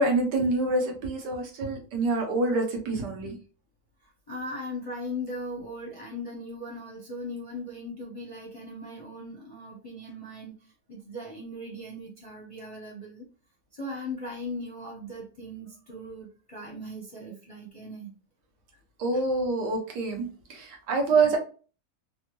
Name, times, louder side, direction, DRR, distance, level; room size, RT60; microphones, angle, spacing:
voice 1, 0.0-3.4 19.0-21.4, right 3 dB, 80° right, 2 dB, 1.4 m, -26 dB
voice 2, 4.0-13.2 13.7-18.1 19.1-19.2 21.1-21.3, left 1 dB, 30° left, -4 dB, 0.6 m, -39 dB
3.4 x 2.2 x 3.0 m, 0.37 s
omnidirectional pair, 1.8 m